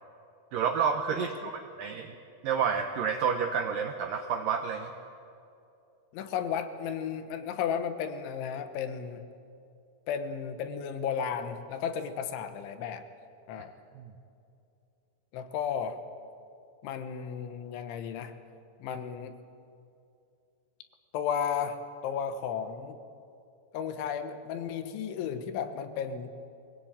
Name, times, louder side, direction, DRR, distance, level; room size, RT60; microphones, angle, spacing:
voice 1, 0.5-1.3 1.8-2.2 2.4-4.9 14.0-14.1, right 7 dB, 90° right, 5 dB, 1.9 m, -29 dB
voice 2, 1.1-1.5 6.1-9.2 10.1-13.0 13.5-13.7 15.3-16.0 16.8-18.3 18.8-19.4 21.1-23.0 23.7-26.3, left 7 dB, 80° left, 9 dB, 3.6 m, -34 dB
22.5 x 18.0 x 8.9 m, 2.6 s
omnidirectional pair, 5.3 m